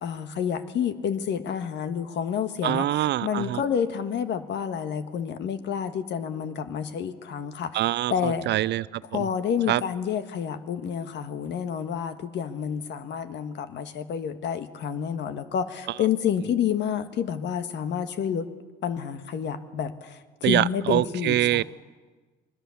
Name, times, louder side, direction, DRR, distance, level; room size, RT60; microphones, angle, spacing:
voice 1, 0.0-2.9 3.2-8.5 9.0-18.5 18.8-21.6, left 8 dB, 65° left, 10 dB, 1.5 m, -29 dB
voice 2, 2.6-3.6 7.7-9.3 9.7-9.8 20.4-21.6, right 14 dB, 60° right, 19 dB, 0.6 m, -25 dB
22.5 x 20.5 x 7.2 m, 1.4 s
cardioid pair, 95°, 20 cm